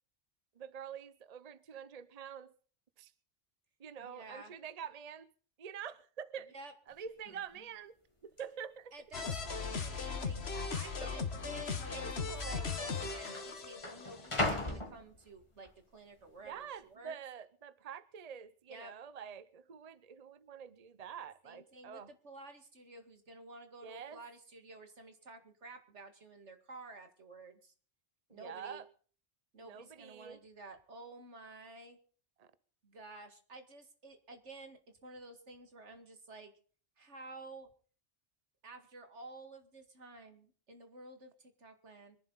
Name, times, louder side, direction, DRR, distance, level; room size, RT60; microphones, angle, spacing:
voice 1, 0.6-2.5 3.0-3.1 3.8-5.3 5.6-6.5 6.9-7.9 8.2-8.9 9.2-9.3 11.0-11.3 11.9-12.9 16.4-22.1 23.8-24.2 28.3-28.8 29.6-30.4 32.4-32.5, right 7 dB, 40° right, 0.8 m, -47 dB
voice 2, 4.0-4.5 6.5-6.7 8.9-17.1 18.7-18.9 21.4-27.7 28.3-28.8 29.5-32.0 32.8-36.5 37.0-37.7 38.6-42.2, right 2 dB, 80° right, 2.4 m, -52 dB
sound 1, 6.9-7.0 7.3-7.7 8.4-8.5 9.2-9.7 10.0-10.1 11.0-11.2 12.2-12.3 12.5-15.7 16.2-16.6, left 2 dB, 25° left, 1.9 m, -39 dB
sound 2, 9.1-14.2, left 5 dB, 65° left, 1.6 m, -38 dB
24.5 x 11.0 x 4.1 m
omnidirectional pair, 1.2 m